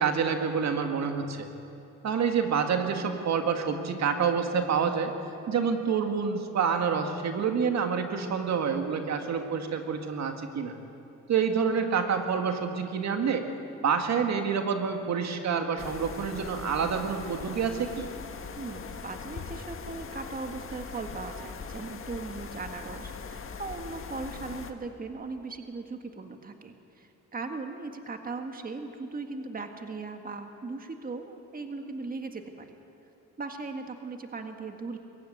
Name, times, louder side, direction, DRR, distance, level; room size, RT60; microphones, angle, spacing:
voice 1, 0.0-1.5 2.0-5.2 5.5-10.7 11.3-13.5 13.8-18.1, right 6 dB, 60° right, 5 dB, 1.9 m, -27 dB
sound 1, 15.8-24.7, left 5 dB, 45° left, 1.6 m, -41 dB
voice 2, 18.6-32.8 33.4-35.0, right 3 dB, 30° right, 5 dB, 1.8 m, -38 dB
22.5 x 15.0 x 9.5 m, 2.8 s
cardioid pair, 90°, 30 cm